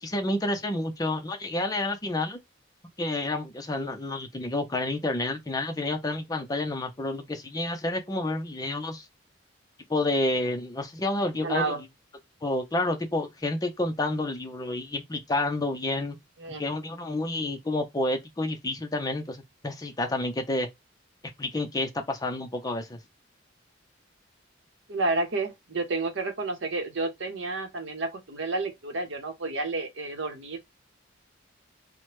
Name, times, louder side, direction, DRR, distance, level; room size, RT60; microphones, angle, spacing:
voice 1, 0.0-2.4 3.0-9.1 9.9-11.7 12.4-16.2 16.6-20.7 21.4-23.0, left 2 dB, 20° left, 0.5 m, -29 dB
voice 2, 11.4-11.8 16.4-16.6 24.9-30.6, right 3 dB, 70° right, 0.8 m, -30 dB
2.9 x 2.1 x 3.2 m
head